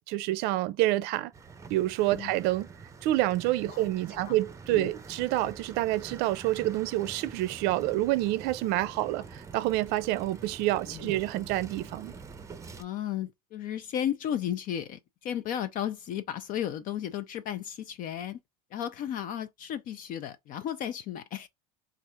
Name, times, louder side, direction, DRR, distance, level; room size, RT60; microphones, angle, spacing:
voice 1, 0.0-1.3 1.7-2.7 3.0-12.1, right 16 dB, 55° right, 0.5 m, -28 dB
sound 1, 1.3-12.8, right 4 dB, 15° right, 0.6 m, -46 dB
voice 2, 12.8-18.4 18.7-21.5, left 10 dB, 45° left, 0.5 m, -34 dB
3.3 x 2.5 x 4.2 m
supercardioid pair, 100°, 19 cm